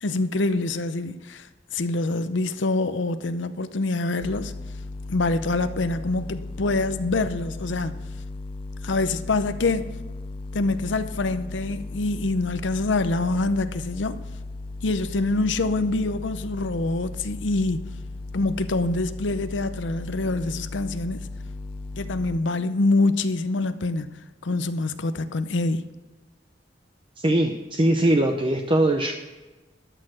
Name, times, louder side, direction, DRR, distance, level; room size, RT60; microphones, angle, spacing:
voice 1, 0.0-4.5 5.1-8.0 8.8-9.9 10.5-14.2 14.8-17.9 18.3-21.3 22.0-24.1 24.4-25.8, left 2 dB, 85° left, 0.7 m, -25 dB
sound 1, 4.2-22.4, left 2 dB, 30° left, 0.4 m, -36 dB
voice 2, 27.2-29.1, right 1 dB, 30° right, 0.7 m, -21 dB
12.5 x 6.7 x 6.3 m
head